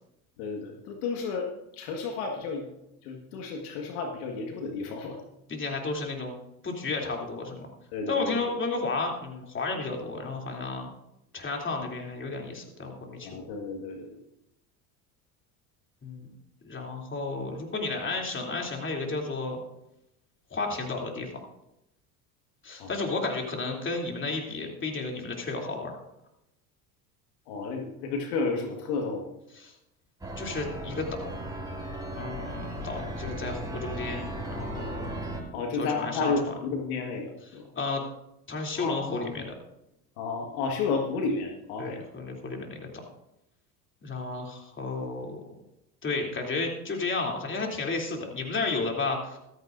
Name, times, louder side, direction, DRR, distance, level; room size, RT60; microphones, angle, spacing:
voice 1, 0.4-1.5 1.7-2.6 3.0-5.2 7.9-8.3 13.2-14.2 22.8-22.9 27.5-29.2 35.5-37.6 38.8-39.4 40.2-42.0, left 4 dB, 70° left, 2 dB, 1.8 m, -32 dB
voice 2, 5.5-6.3 6.6-7.7 8.1-10.9 11.3-13.3 16.0-16.3 16.6-19.6 20.5-21.3 22.6-25.9 29.5-29.7 30.4-31.4 32.1-35.1 35.8-36.3 37.7-38.0 38.5-39.5 41.8-42.9 44.0-45.4 46.0-49.4, left 3 dB, 25° left, 1 dB, 3.2 m, -32 dB
sound 1, 30.2-35.4, right 1 dB, 10° right, 4.5 m, -36 dB
14.5 x 13.5 x 2.6 m, 0.86 s
hypercardioid pair, 80°, 45 cm